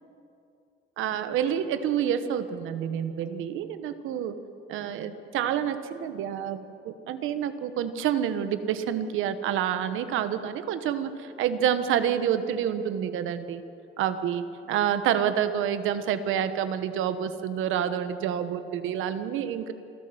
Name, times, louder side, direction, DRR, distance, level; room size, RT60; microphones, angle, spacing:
voice 1, 1.0-4.4 4.7-6.6 6.8-13.6 14.0-19.7, right 9 dB, 90° right, 11 dB, 1.2 m, -28 dB
28.0 x 13.0 x 7.9 m, 2.7 s
cardioid pair, 90°, 20 cm